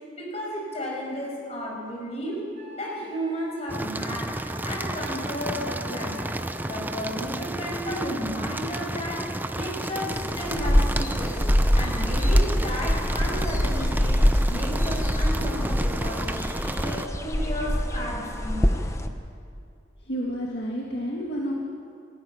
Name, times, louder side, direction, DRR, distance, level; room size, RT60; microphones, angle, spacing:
voice 1, 0.2-2.4 2.8-4.3 4.6-6.2 6.6-9.2 9.5-11.3 11.7-14.2 14.5-16.4 16.7-19.0, equal, 35° left, -2 dB, 6.0 m, -33 dB
Wind instrument woodwind instrument, 1.9-2.0 2.5-7.2, left 2 dB, 45° right, 5.5 m, -45 dB
sound 1, 3.7-17.1, right 1 dB, 10° right, 0.5 m, -32 dB
sound 2, 10.1-19.1, equal, 15° left, 0.9 m, -24 dB
voice 2, 20.1-21.5, equal, 60° left, -3 dB, 2.2 m, -30 dB
20.0 x 14.5 x 9.5 m, 2.4 s
head